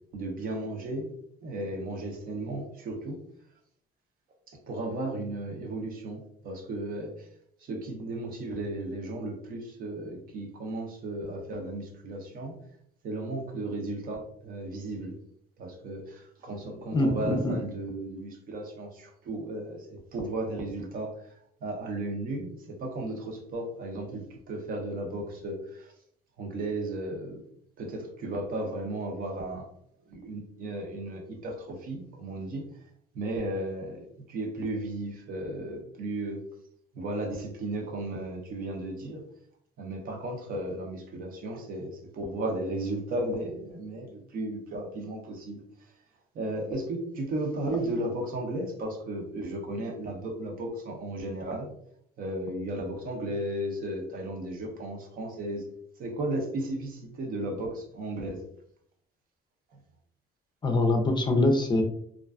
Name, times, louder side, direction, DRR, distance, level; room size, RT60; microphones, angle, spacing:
voice 1, 0.1-1.1 1.4-3.2 4.5-7.1 7.6-12.5 13.0-15.2 15.6-21.1 21.6-25.9 26.4-27.4 27.8-29.7 30.1-32.6 33.1-36.4 36.9-39.2 39.8-45.6 46.3-51.7 52.2-55.6 56.0-58.4, right 1 dB, 60° right, 2 dB, 0.7 m, -34 dB
voice 2, 16.9-17.5 60.6-61.8, left 2 dB, 25° left, 3 dB, 0.4 m, -24 dB
2.4 x 2.2 x 2.3 m, 0.68 s
cardioid pair, 110°, 17 cm